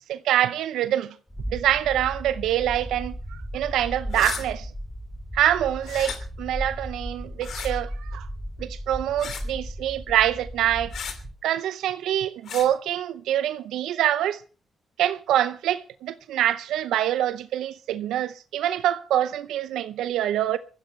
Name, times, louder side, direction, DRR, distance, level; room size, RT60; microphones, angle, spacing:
voice 1, 0.1-1.1 1.5-4.7 5.3-8.3 8.6-10.9 11.4-14.4 15.0-20.6, right 11 dB, 90° right, 0.7 m, -25 dB
sound 1, 1.3-11.3, equal, 5° left, 3.3 m, -35 dB
sound 2, 4.1-4.4 5.8-6.2 7.4-7.7 9.2-9.5 10.9-11.2 12.5-12.7, left 7 dB, 70° left, 2.7 m, -34 dB
21.0 x 15.0 x 3.2 m
cardioid pair, 70°, 0 cm